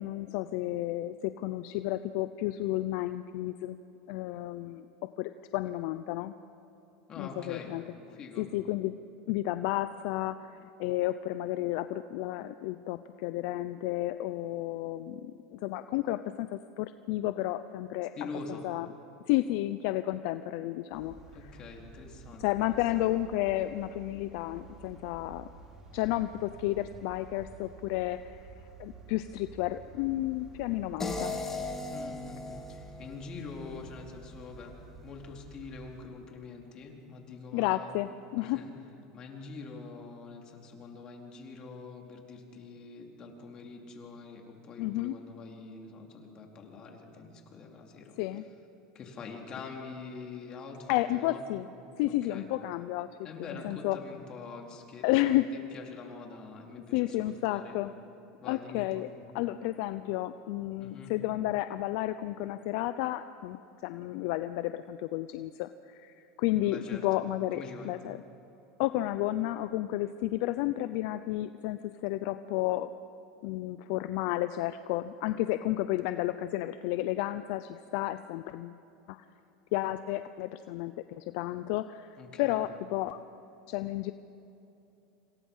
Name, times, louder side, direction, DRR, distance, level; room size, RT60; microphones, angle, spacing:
voice 1, 0.0-3.8 4.1-4.9 5.2-6.3 7.2-7.8 8.4-9.0 9.3-18.1 18.6-18.9 19.3-21.1 22.4-25.5 25.9-28.4 28.8-31.3 37.5-38.6 44.8-45.2 48.2-48.5 50.9-51.7 52.0-53.1 53.5-54.0 55.0-55.5 56.9-57.9 58.4-59.1 59.3-63.6 63.8-68.2 68.8-72.9 73.4-78.8 79.1-79.2 79.7-82.1 82.4-83.2 83.7-84.1, left 15 dB, 65° left, 11 dB, 0.7 m, -32 dB
voice 2, 7.1-7.7 8.1-8.5 18.2-18.6 21.3-23.1 31.9-34.7 35.0-37.9 38.4-38.7 39.1-48.2 48.9-51.4 52.1-52.5 53.2-55.4 55.7-57.8 58.4-59.1 60.8-61.1 66.6-67.0 67.5-67.9 82.2-82.6, left 4 dB, 35° left, 1 dB, 4.2 m, -45 dB
sound 1, 20.9-36.1, right 5 dB, 30° right, 4.8 m, -51 dB
sound 2, 31.0-34.1, left 2 dB, 15° left, 3.1 m, -38 dB
27.0 x 26.5 x 5.7 m, 2.9 s
supercardioid pair, 125°, 2 cm